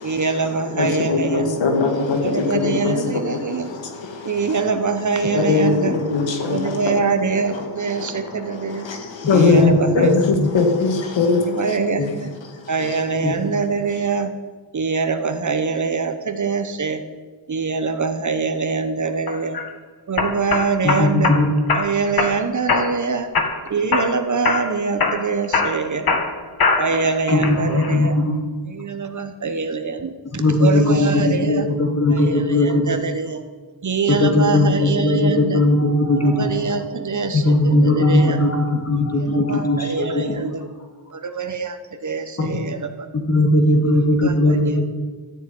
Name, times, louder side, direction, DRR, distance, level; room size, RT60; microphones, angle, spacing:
voice 1, 0.0-1.6 2.2-3.7 4.2-6.0 6.5-8.9 9.3-10.1 11.3-12.3 12.7-14.3 14.7-17.0 17.5-19.6 20.1-21.3 21.7-23.3 23.7-26.2 26.8-28.2 28.6-31.7 32.1-33.4 33.8-35.6 36.1-38.4 39.2-40.6 41.1-43.1 44.2-44.8, right 4 dB, 40° right, 8 dB, 1.0 m, -24 dB
voice 2, 0.6-4.6 5.3-7.0 7.3-11.8 12.8-13.0, left 4 dB, 80° left, 4 dB, 2.1 m, -21 dB
sound 1, 19.3-19.6 20.2-21.4 21.7-22.3 22.7-23.0 23.3-24.1 24.4-24.7 25.0-27.0 27.4-27.9, left 4 dB, 55° left, 1.8 m, -21 dB
voice 3, 20.8-21.5 27.3-28.4 30.4-33.0 34.1-36.5 37.3-40.4 42.4-42.5 43.1-44.8, left 2 dB, 35° left, 2 dB, 2.6 m, -18 dB
13.5 x 7.5 x 9.3 m, 1.4 s
wide cardioid pair, 140°, 44 cm